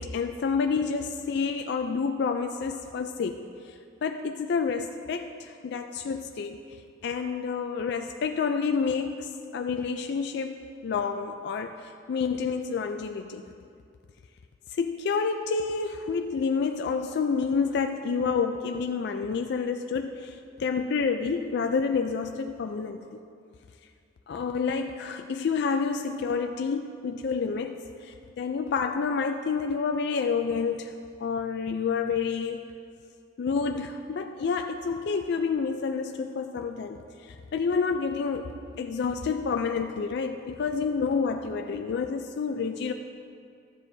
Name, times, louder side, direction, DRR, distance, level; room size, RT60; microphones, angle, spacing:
voice 1, 0.0-3.7 4.0-6.6 7.0-13.4 14.7-23.2 24.3-30.9 31.2-32.6 33.4-42.9, left 5 dB, 60° left, 5 dB, 0.3 m, -29 dB
13.0 x 9.6 x 2.6 m, 2.4 s
head